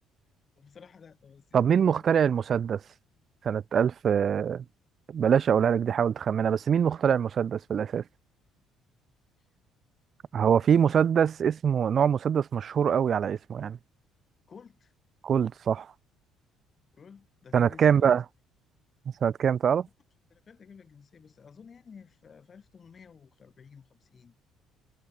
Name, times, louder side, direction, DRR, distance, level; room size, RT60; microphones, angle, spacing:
voice 1, 0.6-2.4 10.4-11.0 14.5-14.9 16.9-18.2 20.3-24.3, left 6 dB, 35° left, 5.1 m, -53 dB
voice 2, 1.5-2.8 3.4-4.6 5.1-8.0 10.3-13.8 15.2-15.9 17.5-18.2 19.2-19.9, right 8 dB, 40° right, 1.2 m, -24 dB
cardioid pair, 125°, 0 cm